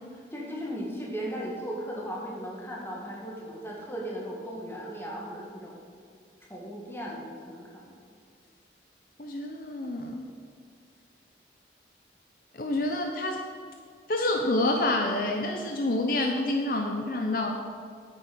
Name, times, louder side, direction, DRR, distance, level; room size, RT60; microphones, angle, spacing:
voice 1, 0.3-5.8 6.5-8.0, equal, 15° left, -2 dB, 1.9 m, -37 dB
voice 2, 9.2-10.3 12.5-13.4 14.1-17.5, left 2 dB, 50° left, 3 dB, 0.7 m, -28 dB
9.2 x 8.5 x 6.2 m, 2.2 s
head